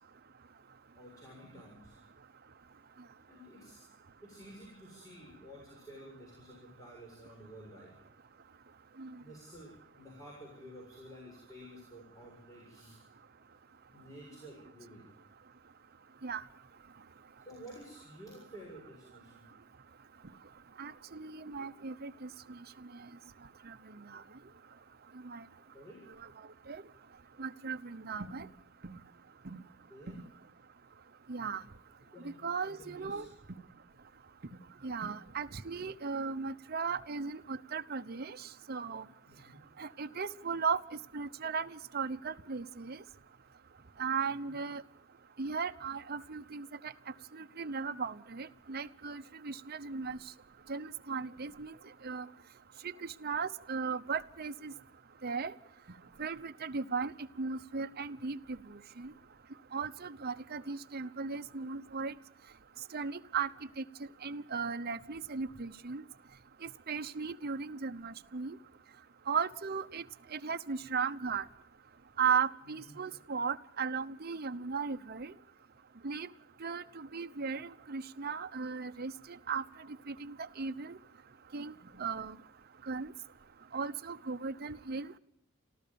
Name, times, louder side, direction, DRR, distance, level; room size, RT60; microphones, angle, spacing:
voice 1, 0.9-2.0 3.3-3.8 4.2-7.9 9.2-9.7 10.0-12.9 13.9-15.0 17.5-19.5 25.7-26.0 29.9-30.2 32.1-32.4 32.6-33.3 39.3-39.6 44.2-44.5 72.6-72.9, equal, 15° left, -2 dB, 7.2 m, -52 dB
voice 2, 20.8-22.3 23.7-23.8 24.1-24.2 25.2-25.4 26.7-26.8 27.4-28.5 28.8-29.0 29.4-29.6 30.1-30.2 31.3-31.6 32.2-33.3 34.8-39.0 39.8-40.8 41.1-43.0 44.0-44.8 45.4-46.9 47.3-50.2 50.7-51.7 52.0-52.3 52.8-54.7 55.2-55.5 56.2-57.1 57.4-58.6 59.0-59.1 59.7-62.1 62.9-63.5 63.8-63.9 64.2-66.0 66.6-68.6 69.3-70.0 70.3-71.4 72.2-75.3 76.0-76.3 76.6-79.1 79.5-79.6 80.1-81.0 81.5-81.7 82.0-82.3 82.9-83.1 83.7-85.1, right 5 dB, 50° right, 10 dB, 0.9 m, -36 dB
29.5 x 13.5 x 6.9 m, 0.79 s
head